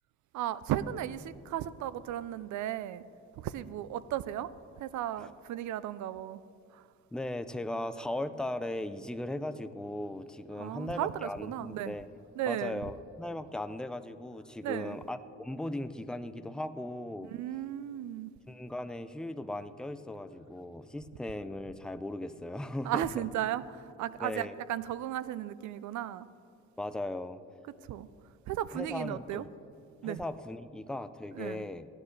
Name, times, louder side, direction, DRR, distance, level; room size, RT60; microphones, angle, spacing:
voice 1, 0.3-3.0 3.4-4.5 4.8-6.4 6.7-6.8 10.6-12.0 12.4-12.8 14.6-15.0 17.4-18.3 22.8-26.3 27.9-28.1 28.5-29.4 30.0-30.2 31.3-31.7, right 12 dB, 70° right, 0.5 m, -35 dB
voice 2, 7.1-12.1 12.5-17.3 18.5-23.2 24.2-24.6 26.8-27.4 28.7-29.5 30.0-31.9, left 1 dB, 5° left, 0.4 m, -38 dB
16.0 x 9.6 x 3.2 m
cardioid pair, 90°, 30 cm